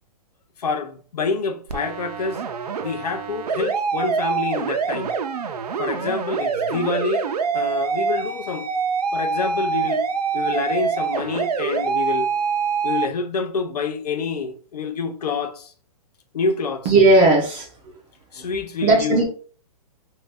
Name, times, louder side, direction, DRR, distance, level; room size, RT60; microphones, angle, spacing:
voice 1, 0.6-2.4 2.8-5.1 5.8-7.3 7.5-8.7 9.1-10.0 10.3-12.3 12.8-15.7 16.3-16.9 18.3-19.2, left 4 dB, 90° left, 0.6 m, -27 dB
sound 1, 1.7-13.1, right 5 dB, 85° right, 0.5 m, -25 dB
voice 2, 16.9-17.7 18.4-18.5 18.8-19.2, right 2 dB, 20° right, 0.4 m, -16 dB
2.6 x 2.2 x 3.4 m
hypercardioid pair, 160°, 19 cm